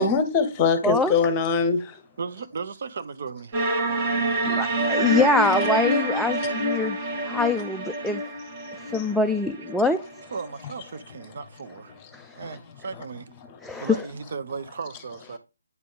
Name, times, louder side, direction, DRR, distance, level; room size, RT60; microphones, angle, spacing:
voice 1, 0.0-1.9 4.4-4.6 8.9-9.0 12.4-12.6 12.9-13.0 13.7-13.9, left 5 dB, 20° left, 1.1 m, -23 dB
voice 2, 2.2-3.6 10.3-11.9 12.4-13.3 13.8-15.4, right 5 dB, 50° right, 0.6 m, -35 dB
sound 1, 3.5-10.5, right 1 dB, 30° right, 1.8 m, -26 dB
voice 3, 4.6-8.2 8.9-10.0 12.1-12.3 13.6-14.1, left 3 dB, ahead, 0.3 m, -24 dB
9.3 x 3.7 x 3.7 m
figure-of-eight pair, 145°, 0 cm